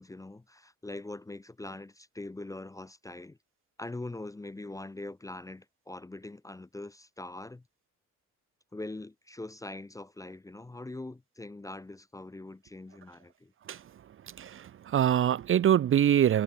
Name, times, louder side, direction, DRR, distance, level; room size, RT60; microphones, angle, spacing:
voice 1, 0.0-3.4 3.8-7.6 8.7-13.5, left 2 dB, 10° left, 0.5 m, -42 dB
voice 2, 14.3-16.4, right 10 dB, 45° right, 0.5 m, -24 dB
cardioid pair, 90°, 30 cm